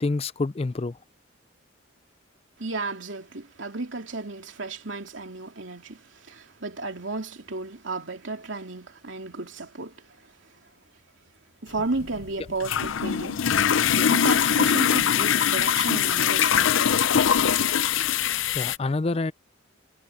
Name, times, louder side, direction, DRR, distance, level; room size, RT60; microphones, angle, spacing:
voice 1, 0.0-1.0 18.6-19.3, left 3 dB, 30° left, 0.4 m, -27 dB
voice 2, 2.6-10.2 11.6-13.4 13.9-16.9 19.1-19.2, right 3 dB, 70° right, 2.8 m, -33 dB
sound 1, 11.7-18.8, left 8 dB, 80° left, 0.6 m, -22 dB
head